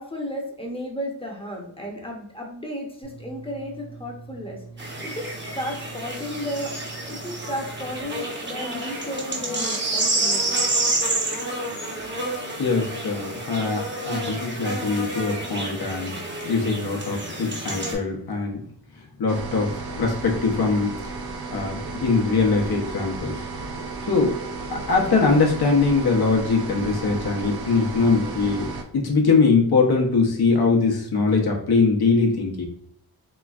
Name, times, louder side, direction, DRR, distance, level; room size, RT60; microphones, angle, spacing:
voice 1, 0.0-4.6 5.0-6.8 7.1-10.6, equal, 15° left, 0 dB, 0.7 m, -33 dB
sound 1, 3.0-8.0, right 4 dB, 55° left, 1.1 m, -43 dB
sound 2, 4.8-17.9, right 2 dB, 30° right, 0.7 m, -29 dB
voice 2, 12.6-16.1 16.4-18.6 19.2-20.9 21.5-23.5 24.1-24.3 24.7-28.7 28.9-32.7, left 4 dB, 75° left, 0 dB, 0.8 m, -22 dB
sound 3, 19.3-28.8, right 3 dB, 75° right, 0.6 m, -34 dB
3.3 x 3.1 x 2.3 m, 0.68 s
wide cardioid pair, 115°, 38 cm